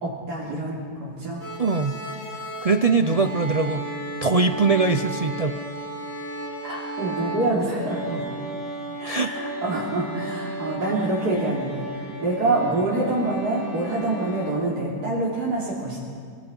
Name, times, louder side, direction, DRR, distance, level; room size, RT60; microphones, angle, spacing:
voice 1, 0.0-1.4 2.8-3.0 6.6-8.2 9.0-16.0, right 2 dB, 85° right, -7 dB, 3.7 m, -26 dB
sound 1, 1.4-14.5, right 1 dB, 10° left, 7.3 m, -34 dB
voice 2, 1.6-2.0 2.6-3.9 4.2-5.6 9.1-9.5, right 4 dB, 55° right, 8 dB, 0.4 m, -22 dB
25.5 x 25.0 x 5.5 m, 2.2 s
omnidirectional pair, 1.7 m